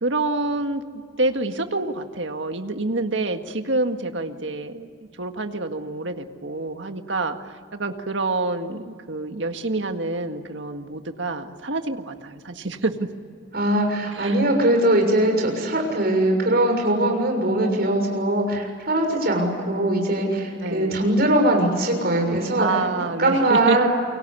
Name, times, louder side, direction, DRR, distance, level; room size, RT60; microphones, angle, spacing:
voice 1, 0.0-4.9 5.2-7.4 7.7-13.1 14.1-14.4 20.6-21.0 22.6-23.8, right 2 dB, 75° right, 6 dB, 1.8 m, -27 dB
voice 2, 13.5-22.8 23.2-23.9, right 1 dB, 55° right, 3 dB, 6.8 m, -21 dB
29.5 x 24.0 x 8.4 m, 2.2 s
head